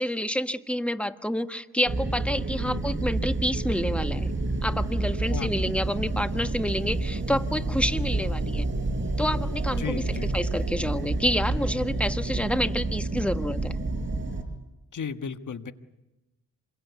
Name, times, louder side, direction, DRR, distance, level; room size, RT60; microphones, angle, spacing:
voice 1, 0.0-4.3 4.6-8.6 9.2-13.8, equal, 5° left, 9 dB, 1.4 m, -28 dB
sound 1, 1.8-14.4, right 2 dB, 35° right, 5.2 m, -29 dB
voice 2, 9.8-10.3 14.9-15.7, left 6 dB, 65° left, 9 dB, 1.6 m, -34 dB
27.0 x 22.5 x 8.3 m, 1.0 s
cardioid pair, 65°, 33 cm